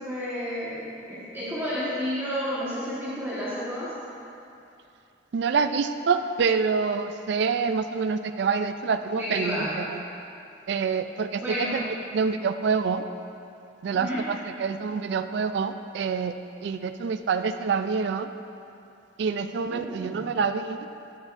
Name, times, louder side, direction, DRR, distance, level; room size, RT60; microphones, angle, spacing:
voice 1, 0.0-3.9 9.1-9.7 11.4-11.8 13.9-14.2 19.7-20.3, equal, 15° right, -11 dB, 1.3 m, -31 dB
voice 2, 5.3-10.0 10.7-13.1 13.8-16.4 16.6-18.3 19.2-20.9, right 5 dB, 60° right, 10 dB, 0.3 m, -27 dB
12.5 x 6.2 x 2.5 m, 2.7 s
head